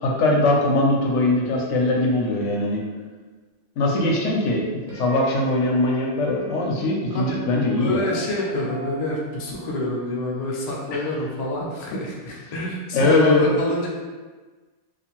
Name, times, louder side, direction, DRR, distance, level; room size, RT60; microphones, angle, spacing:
voice 1, 0.0-2.8 3.8-8.1 10.9-11.1 12.9-13.6, left 2 dB, 85° left, -1 dB, 0.9 m, -21 dB
sound 1, 4.9-12.0, left 4 dB, 25° right, 0.7 m, -39 dB
voice 2, 7.8-13.9, left 2 dB, 50° left, -3 dB, 0.5 m, -27 dB
2.5 x 2.3 x 2.9 m, 1.4 s
omnidirectional pair, 1.2 m